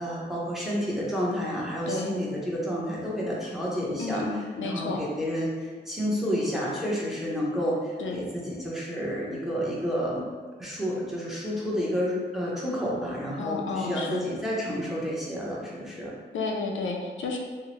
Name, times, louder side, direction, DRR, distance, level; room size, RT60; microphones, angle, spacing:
voice 1, 0.0-4.2 4.6-10.3 10.6-16.2, equal, ahead, -6 dB, 0.7 m, -30 dB
voice 2, 4.0-5.0 8.0-8.2 13.4-14.2 16.3-17.4, left 3 dB, 85° left, 1 dB, 0.4 m, -31 dB
2.8 x 2.0 x 2.8 m, 1.5 s
wide cardioid pair, 80°, 20 cm